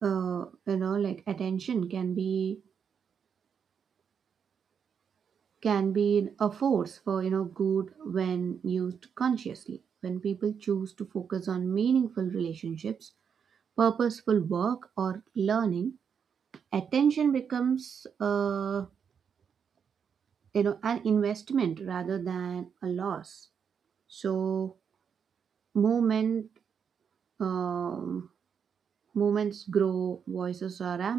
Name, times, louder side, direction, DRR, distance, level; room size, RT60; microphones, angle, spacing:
voice 1, 0.0-2.6 5.6-13.1 13.8-16.0 16.7-18.9 20.5-23.5 24.1-24.7 25.7-26.5 27.4-28.3 29.1-31.1, right 7 dB, 70° right, 0.5 m, -29 dB
wide cardioid pair, 100°, 0 cm